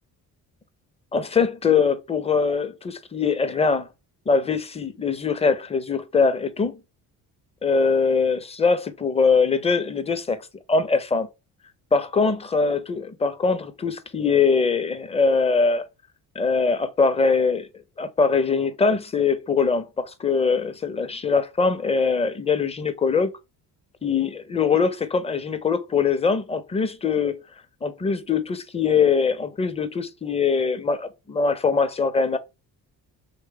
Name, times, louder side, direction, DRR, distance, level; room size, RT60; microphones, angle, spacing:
voice 1, 1.1-3.9 4.3-6.8 7.6-10.4 10.7-11.3 11.9-15.8 16.4-17.7 18.0-23.3 24.0-27.4 27.8-32.4, left 5 dB, 15° left, 0.5 m, -22 dB
3.1 x 2.2 x 3.3 m
supercardioid pair, 60°, 42 cm